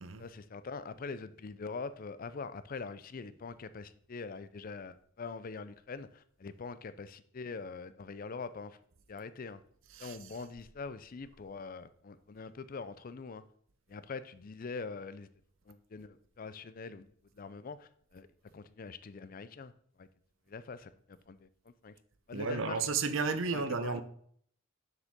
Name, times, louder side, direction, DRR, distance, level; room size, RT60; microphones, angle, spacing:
voice 1, 0.2-8.8 9.1-9.6 10.0-13.4 13.9-15.3 15.7-17.1 17.4-18.3 18.5-19.7 20.0-20.1 20.5-20.9 21.3-21.5 21.8-21.9 22.3-22.8 23.5-24.0, left 4 dB, 45° left, 0.4 m, -43 dB
voice 2, 9.9-10.4 22.3-24.0, right 4 dB, 70° right, 0.7 m, -33 dB
7.3 x 6.6 x 3.6 m
head